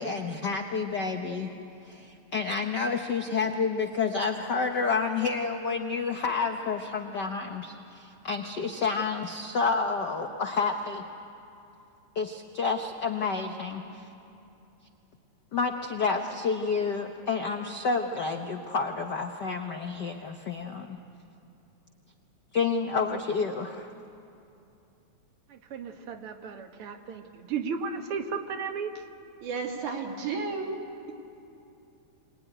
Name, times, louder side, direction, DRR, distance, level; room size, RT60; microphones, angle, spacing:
voice 1, 0.0-1.5 1.8-11.0 12.1-14.0 15.5-21.0 22.5-23.9, left 4 dB, 75° left, 5 dB, 0.9 m, -29 dB
voice 2, 25.5-28.9, right 5 dB, 55° right, 5 dB, 2.1 m, -34 dB
voice 3, 29.4-30.8, right 4 dB, 80° right, 0 dB, 3.9 m, -32 dB
25.0 x 19.0 x 10.0 m, 2.7 s
omnidirectional pair, 3.4 m